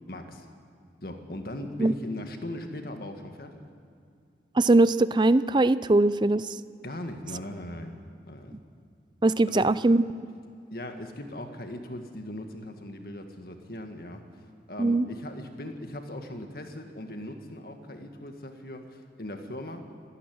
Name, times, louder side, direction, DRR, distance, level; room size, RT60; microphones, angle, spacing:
voice 1, 0.1-0.5 1.0-3.6 6.8-7.9 8.3-8.6 9.4-9.7 10.7-14.2 14.7-19.9, left 1 dB, 55° left, 5 dB, 1.9 m, -39 dB
voice 2, 4.6-6.5 9.2-10.0 14.8-15.0, right 2 dB, 25° right, 16 dB, 0.4 m, -21 dB
25.5 x 11.5 x 9.5 m, 2.3 s
head